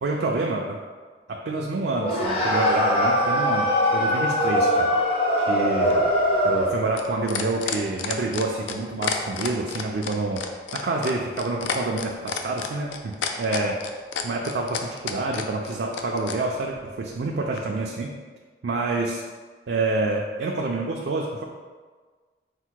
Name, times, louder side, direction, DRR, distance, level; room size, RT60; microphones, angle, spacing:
voice 1, 0.0-0.8 1.3-5.0 5.4-6.0 6.4-10.4 10.7-13.8 14.2-18.1 18.6-19.2 19.7-21.4, right 2 dB, 65° right, 0 dB, 0.3 m, -27 dB
sound 1, 2.0-6.8, equal, 30° left, 0.7 m, -22 dB
sound 2, 5.9-16.4 17.6-17.7, left 7 dB, 85° left, 0.4 m, -30 dB
4.3 x 2.1 x 4.5 m, 1.5 s
head